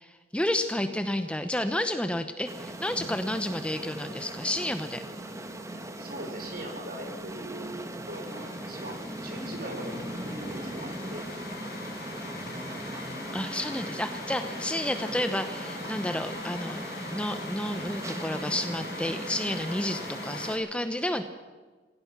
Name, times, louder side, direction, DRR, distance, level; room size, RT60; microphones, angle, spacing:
voice 1, 0.0-5.0 13.3-16.8 17.1-21.2, left 1 dB, 5° left, 8 dB, 0.9 m, -31 dB
sound 1, 2.5-20.6, right 1 dB, 15° right, 1.5 m, -39 dB
voice 2, 6.0-11.3, right 1 dB, 50° right, 4 dB, 4.8 m, -41 dB
sound 2, 8.1-20.5, left 3 dB, 55° left, 5.0 m, -42 dB
26.5 x 16.5 x 6.1 m, 1.4 s
head